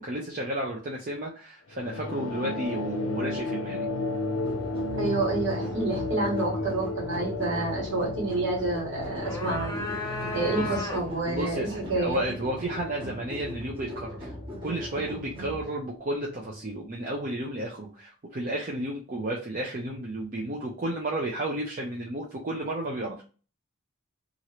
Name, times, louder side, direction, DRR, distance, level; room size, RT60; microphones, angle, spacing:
voice 1, 0.0-3.9 10.5-10.7 11.3-14.3 14.6-23.2, right 1 dB, 40° right, -2 dB, 0.6 m, -32 dB
sound 1, 1.7-16.6, left 2 dB, 70° left, 0.5 m, -34 dB
sound 2, 4.4-15.6, equal, 25° right, 0.9 m, -40 dB
voice 2, 5.0-9.8 10.3-12.2, right 2 dB, 65° right, -2 dB, 1.4 m, -29 dB
sound 3, 9.0-11.3, left 2 dB, 15° left, 0.7 m, -35 dB
3.0 x 2.5 x 2.9 m, 0.36 s
head